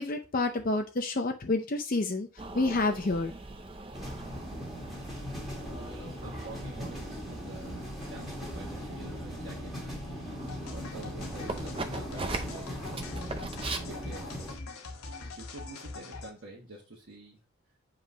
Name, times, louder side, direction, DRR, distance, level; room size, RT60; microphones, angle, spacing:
voice 1, 0.0-2.3 2.5-3.3, left 2 dB, 40° left, 0.6 m, -28 dB
sound 1, 2.4-13.8, right 2 dB, 25° right, 0.6 m, -41 dB
sound 2, 3.9-14.6, equal, ahead, 1.8 m, -39 dB
voice 2, 5.6-9.7 10.7-13.5 13.8-14.5 15.3-17.4, right 2 dB, 50° right, 1.4 m, -48 dB
sound 3, 10.5-16.3, left 3 dB, 75° left, 1.1 m, -43 dB
7.3 x 5.1 x 2.7 m
head